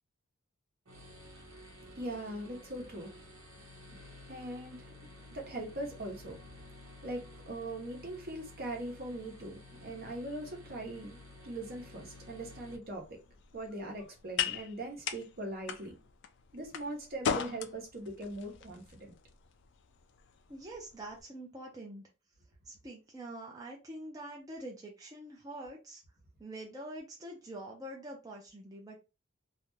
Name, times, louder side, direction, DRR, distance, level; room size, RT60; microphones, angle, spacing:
sound 1, 0.8-12.8, left 2 dB, 85° right, 1.0 m, -53 dB
voice 1, 1.7-3.2 3.5-3.6 3.9-6.7 7.0-13.2 13.5-16.0 16.5-19.1, right 1 dB, 50° right, 0.9 m, -41 dB
sound 2, 12.8-21.2, left 7 dB, 60° left, 0.3 m, -40 dB
voice 2, 20.5-22.1 22.6-26.0 26.4-29.0, right 1 dB, 20° right, 0.5 m, -45 dB
2.5 x 2.2 x 3.1 m
head